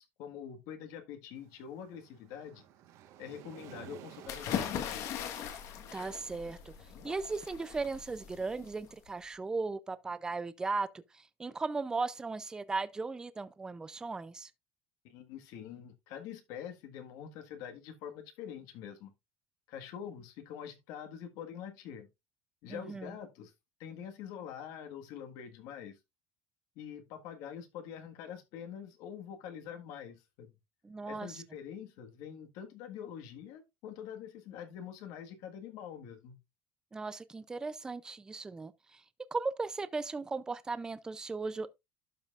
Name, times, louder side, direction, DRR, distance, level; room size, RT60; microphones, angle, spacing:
voice 1, 0.0-2.6 3.2-5.1 15.0-19.1 19.7-22.1 22.6-23.5 23.8-26.0 26.7-30.5 31.1-36.4, left 8 dB, 70° left, 1.5 m, -45 dB
Waves surf, 1.4-8.5, right 11 dB, 55° right, 1.3 m, -56 dB
sound 1, 4.3-9.1, left 9 dB, 50° left, 1.3 m, -40 dB
voice 2, 5.9-6.6 7.0-10.9 11.1-14.5 22.7-23.1 30.8-31.4 36.9-39.0 39.3-41.7, right 3 dB, 10° right, 0.4 m, -37 dB
12.0 x 5.5 x 2.4 m
cardioid pair, 150°, 6 cm